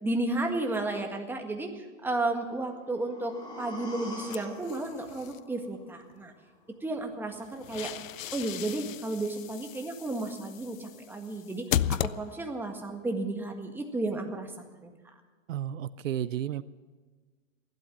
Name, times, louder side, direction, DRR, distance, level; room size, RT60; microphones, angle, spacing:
voice 1, 0.0-6.3 6.8-7.9 8.3-11.6 11.9-14.5 14.8-14.9, right 2 dB, 5° right, 3 dB, 1.7 m, -33 dB
sound 1, 2.5-6.5 6.8-6.9, left 1 dB, 10° left, 4.5 m, -45 dB
sound 2, 4.3-5.4 7.3-12.7, left 11 dB, 85° left, 0.6 m, -36 dB
voice 2, 15.5-16.6, right 10 dB, 75° right, 17 dB, 0.6 m, -32 dB
16.0 x 12.0 x 7.5 m, 1.4 s
hypercardioid pair, 125°, 38 cm